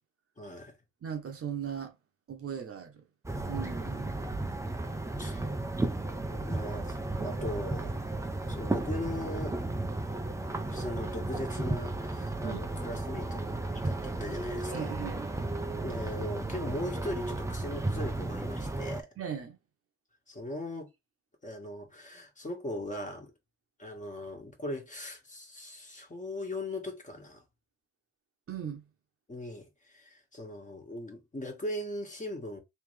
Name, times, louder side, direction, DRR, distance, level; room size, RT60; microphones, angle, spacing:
voice 1, 0.4-0.8 5.2-5.5 6.3-7.9 8.5-9.6 10.7-13.4 13.7-14.9 15.8-19.1 20.3-20.9 21.4-23.3 23.8-27.4 29.3-32.6, left 1 dB, 25° left, 1.6 m, -39 dB
voice 2, 1.0-1.9 2.3-3.0 3.5-4.2 12.4-12.6 14.7-15.3 19.2-19.6 28.5-28.8, right 8 dB, 50° right, 1.1 m, -38 dB
sound 1, 3.2-19.0, right 2 dB, 10° right, 0.6 m, -34 dB
3.4 x 3.0 x 3.3 m
cardioid pair, 90°, 30 cm